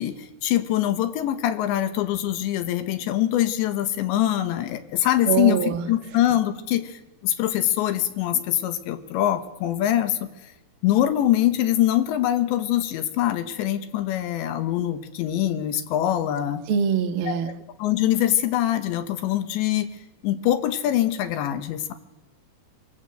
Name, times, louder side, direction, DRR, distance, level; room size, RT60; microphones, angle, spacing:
voice 1, 0.0-10.3 10.8-16.6 17.3-19.9 20.2-21.9, left 12 dB, 90° left, 10 dB, 3.7 m, -24 dB
voice 2, 5.3-5.9 16.7-17.5, right 7 dB, 85° right, 6 dB, 1.1 m, -23 dB
26.0 x 21.5 x 7.8 m, 1.0 s
omnidirectional pair, 5.0 m